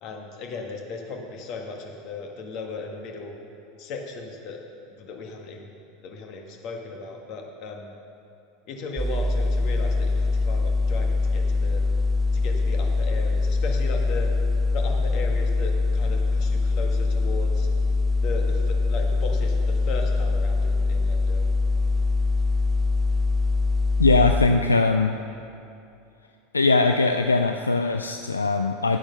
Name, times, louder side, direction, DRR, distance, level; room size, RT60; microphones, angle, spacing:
voice 1, 0.0-3.4 3.8-4.6 5.0-5.7 6.0-7.9 8.7-11.8 12.3-14.3 14.7-17.7 18.2-21.4, left 4 dB, 45° left, 1 dB, 1.6 m, -36 dB
sound 1, 9.0-24.5, left 3 dB, 15° right, 0.5 m, -23 dB
voice 2, 24.0-25.1 26.5-29.0, left 3 dB, 80° left, 6 dB, 0.4 m, -20 dB
11.0 x 8.7 x 5.5 m, 2.6 s
figure-of-eight pair, 80°, 0 cm